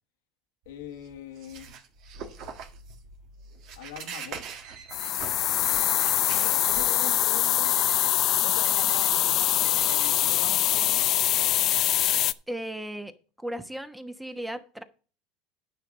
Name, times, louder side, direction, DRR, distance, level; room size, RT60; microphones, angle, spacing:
voice 1, 0.6-1.7 3.7-4.4 6.3-7.8 8.4-11.0, left 10 dB, 90° left, 1.5 m, -42 dB
sound 1, 0.7-7.2, right 6 dB, 60° right, 1.7 m, -43 dB
Alarm, 4.5-5.2 5.6-6.2 6.6-7.2 7.6-8.2 8.6-9.1 9.6-10.1, right 6 dB, 85° right, 2.6 m, -46 dB
sound 2, 4.9-12.3, left 13 dB, 50° left, 0.5 m, -24 dB
voice 2, 12.5-13.1 13.4-14.8, right 1 dB, 5° right, 1.1 m, -35 dB
10.0 x 6.0 x 6.1 m
supercardioid pair, 105°, 0 cm